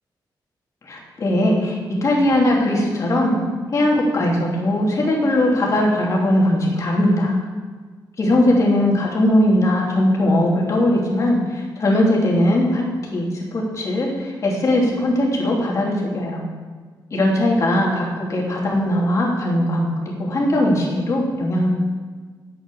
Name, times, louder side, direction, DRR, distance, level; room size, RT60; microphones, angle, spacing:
voice 1, 0.8-3.4 3.7-7.4 8.2-12.8 13.1-16.4 17.1-21.7, left 1 dB, 40° left, -2 dB, 3.0 m, -19 dB
11.0 x 8.1 x 6.9 m, 1.5 s
wide cardioid pair, 150°, 8 cm